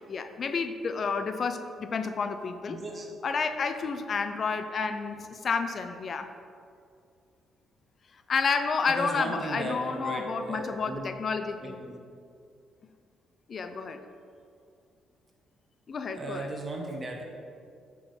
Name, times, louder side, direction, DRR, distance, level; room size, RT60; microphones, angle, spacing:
voice 1, 0.0-2.8 3.2-6.3 8.3-11.8 13.5-14.0 15.9-16.5, left 5 dB, 50° left, 8 dB, 0.5 m, -30 dB
voice 2, 2.7-3.1 8.9-11.0 11.6-11.9 16.1-17.2, right 2 dB, 30° right, 0 dB, 1.4 m, -36 dB
9.8 x 3.8 x 5.7 m, 2.3 s
cardioid pair, 90°, 0 cm